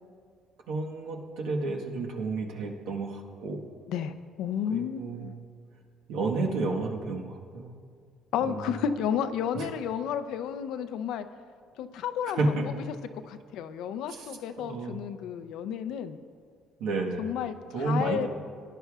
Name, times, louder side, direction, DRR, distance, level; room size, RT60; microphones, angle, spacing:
voice 1, 0.7-3.7 4.7-5.4 6.1-7.7 8.4-8.8 9.5-9.7 12.4-12.6 14.1-14.3 14.6-15.0 16.8-17.3 17.7-18.3, right 3 dB, 80° right, 0 dB, 1.3 m, -31 dB
voice 2, 3.9-5.3 8.3-11.3 11.8-12.6 13.3-16.2 17.2-18.3, left 8 dB, 75° left, 10 dB, 0.5 m, -32 dB
18.0 x 10.0 x 2.4 m, 2.1 s
cardioid pair, 130°, 0 cm